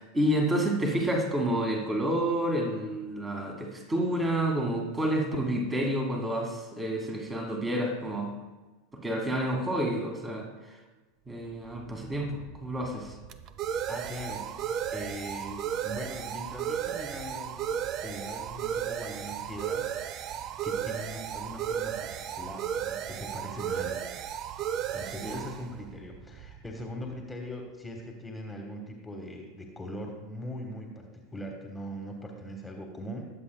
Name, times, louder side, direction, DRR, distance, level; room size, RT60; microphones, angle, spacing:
voice 1, 0.0-8.3 8.9-10.8 11.3-13.2 25.2-25.4, right 1 dB, 15° right, 2 dB, 2.1 m, -29 dB
sound 1, 11.8-27.1, right 9 dB, 40° right, 0.5 m, -35 dB
voice 2, 13.9-17.6 18.0-24.1 24.9-33.3, equal, 10° left, 1 dB, 1.6 m, -41 dB
20.5 x 7.8 x 2.3 m, 1.2 s
figure-of-eight pair, 85°, 0 cm